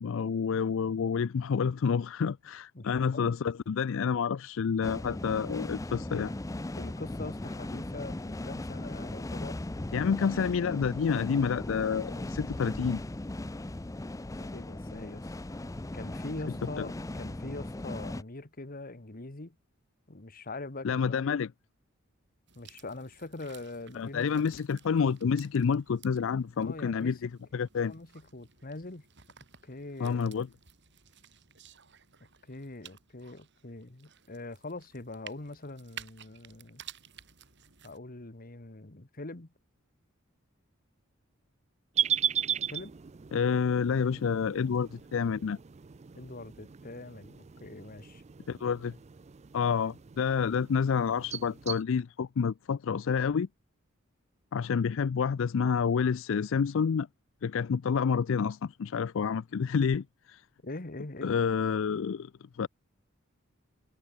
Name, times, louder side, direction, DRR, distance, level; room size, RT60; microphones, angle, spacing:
voice 1, 0.0-6.3 9.9-13.0 16.8-16.9 20.8-21.5 23.9-27.9 30.0-30.5 43.3-45.6 48.5-48.9 49.5-53.5 54.5-57.1 57.4-60.4 61.2-62.3 62.6-62.7, left 6 dB, 65° left, 0.4 m, -29 dB
voice 2, 2.7-3.4 6.7-9.6 10.2-10.4 14.4-15.3 15.9-19.6 20.1-21.3 22.5-24.5 26.6-27.2 27.8-29.0 29.6-30.3 32.5-36.8 37.8-39.5 42.7-42.9 46.1-48.2 60.6-61.3, left 2 dB, 45° left, 1.6 m, -43 dB
sound 1, 4.8-18.2, left 1 dB, 15° left, 0.5 m, -38 dB
sound 2, 22.5-38.0, right 9 dB, 60° right, 6.7 m, -54 dB
sound 3, 41.9-51.8, right 9 dB, 35° right, 0.4 m, -37 dB
head